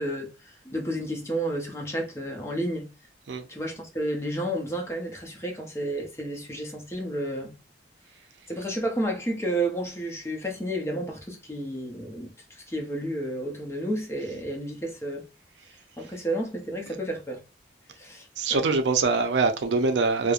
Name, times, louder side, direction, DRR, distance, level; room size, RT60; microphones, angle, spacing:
voice 1, 0.0-2.9 3.5-7.5 8.5-15.2 16.0-17.4 17.9-18.7, right 1 dB, 15° left, 0.6 m, -31 dB
voice 2, 18.4-20.3, right 4 dB, 75° right, 0.5 m, -23 dB
3.0 x 2.0 x 2.4 m
head